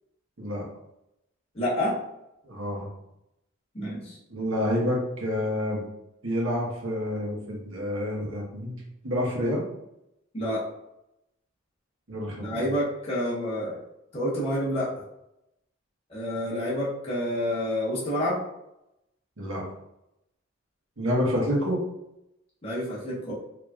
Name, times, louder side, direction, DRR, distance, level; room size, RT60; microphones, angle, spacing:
voice 1, 1.5-2.0 3.7-4.2 10.3-10.6 12.4-13.8 14.1-14.9 16.1-18.4 22.6-23.3, equal, 30° left, -7 dB, 1.2 m, -28 dB
voice 2, 2.4-2.9 4.3-5.8 6.2-9.6 12.1-12.6 19.4-19.6 21.0-21.8, equal, 80° right, -2 dB, 1.2 m, -28 dB
4.7 x 2.8 x 2.4 m, 0.84 s
head